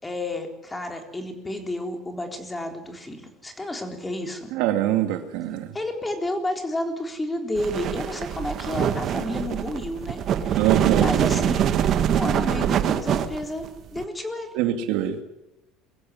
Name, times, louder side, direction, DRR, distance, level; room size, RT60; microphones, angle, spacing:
voice 1, 0.0-4.5 5.7-11.7 12.1-13.7 13.9-14.5, left 1 dB, 10° left, 4 dB, 3.9 m, -31 dB
voice 2, 4.5-5.7 10.6-11.1 14.5-15.2, right 13 dB, 75° right, 7 dB, 2.6 m, -23 dB
sound 1, 7.6-14.0, right 9 dB, 45° right, 1.8 m, -24 dB
23.0 x 15.5 x 9.9 m, 0.97 s
cardioid pair, 145°, 0 cm